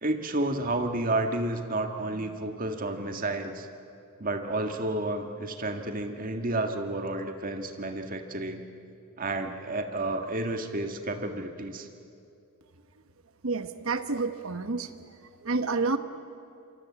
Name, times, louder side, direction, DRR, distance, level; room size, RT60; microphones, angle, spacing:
voice 1, 0.0-3.7 4.2-8.6 9.2-11.9, right 2 dB, 40° right, 5 dB, 1.8 m, -31 dB
voice 2, 13.4-14.9 15.4-16.0, right 3 dB, 70° right, 10 dB, 1.1 m, -29 dB
27.0 x 23.5 x 8.7 m, 2.6 s
head